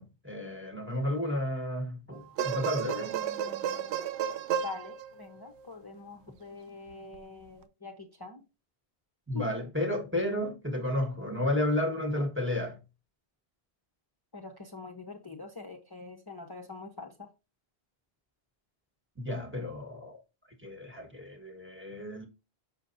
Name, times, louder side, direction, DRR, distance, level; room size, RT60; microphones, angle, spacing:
voice 1, 0.0-3.2 9.3-12.8 19.2-20.2 20.6-22.3, left 1 dB, 10° right, 1.3 m, -32 dB
sound 1, 2.1-5.6 7.1-7.2, right 9 dB, 85° right, 0.9 m, -33 dB
voice 2, 3.0-3.9 4.6-8.4 9.3-9.6 14.3-17.3, left 3 dB, 25° left, 0.8 m, -44 dB
6.7 x 6.3 x 2.6 m
omnidirectional pair, 1.1 m